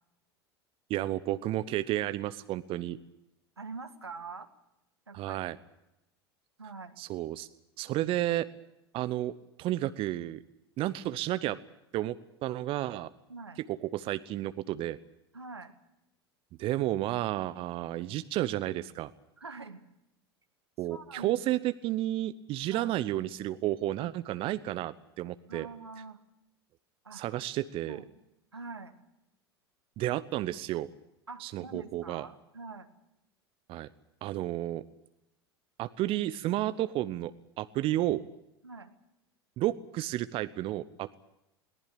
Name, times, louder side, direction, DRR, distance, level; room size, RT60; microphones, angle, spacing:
voice 1, 0.9-3.0 5.1-5.6 7.0-7.5 7.8-8.5 8.9-9.3 9.6-10.4 10.8-11.6 11.9-12.1 12.4-13.1 13.7-15.0 16.6-19.1 20.8-25.7 27.1-28.0 30.0-30.9 31.4-32.3 33.7-33.9 34.2-34.8 35.8-38.2 39.6-41.1, right 14 dB, 40° right, 15 dB, 0.9 m, -32 dB
voice 2, 3.6-4.5 5.1-5.5 6.6-7.0 13.3-13.6 15.3-15.7 19.4-19.8 20.9-21.4 22.7-22.9 25.5-26.2 27.0-27.2 27.9-28.1 28.5-29.0 31.3-32.9 38.6-38.9, right 4 dB, 85° right, 8 dB, 1.8 m, -44 dB
22.0 x 18.5 x 8.6 m, 0.85 s
figure-of-eight pair, 80°, 13 cm